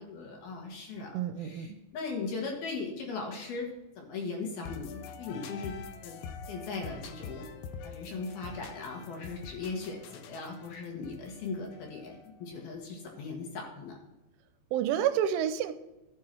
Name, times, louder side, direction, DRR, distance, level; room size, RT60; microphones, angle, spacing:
voice 1, 0.0-3.7 4.0-6.2 6.4-7.4 7.8-14.0, left 4 dB, 60° left, 1 dB, 3.3 m, -38 dB
voice 2, 1.1-1.8 14.7-15.7, right 10 dB, 90° right, 10 dB, 3.1 m, -29 dB
sound 1, 4.6-12.5, left 5 dB, 80° left, 2.4 m, -45 dB
13.0 x 6.9 x 4.5 m, 1.0 s
omnidirectional pair, 5.5 m